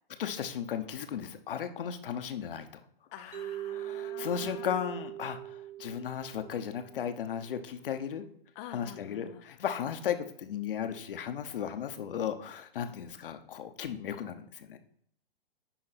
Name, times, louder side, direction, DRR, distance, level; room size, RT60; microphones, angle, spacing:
voice 1, 0.2-2.8 3.7-8.3 8.7-14.8, left 8 dB, 65° left, 8 dB, 1.0 m, -35 dB
voice 2, 3.1-4.7 8.6-9.4, left 11 dB, 30° left, 7 dB, 0.5 m, -47 dB
Mallet percussion, 3.3-7.4, right 12 dB, 50° right, 1.5 m, -41 dB
10.0 x 4.3 x 4.2 m, 0.67 s
hypercardioid pair, 120°, 30 cm